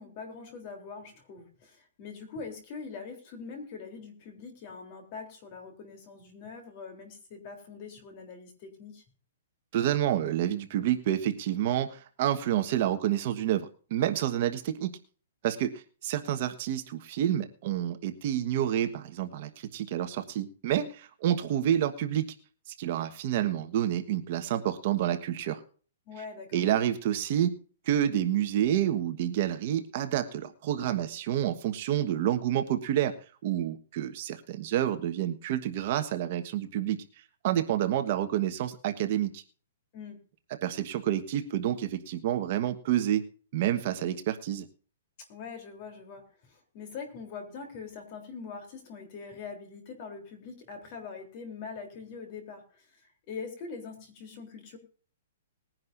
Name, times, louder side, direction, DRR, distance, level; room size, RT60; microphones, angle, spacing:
voice 1, 0.0-9.0 26.1-26.6 39.9-40.2 45.2-52.9 53.3-54.8, left 5 dB, 30° left, 4 dB, 3.5 m, -43 dB
voice 2, 9.7-14.9 15.4-22.3 22.7-25.6 26.5-27.5 27.8-33.1 33.4-37.0 37.4-39.4 40.6-43.3 43.5-44.7, right 11 dB, 40° right, 7 dB, 1.3 m, -29 dB
20.5 x 10.5 x 2.6 m, 0.40 s
hypercardioid pair, 170°, 0 cm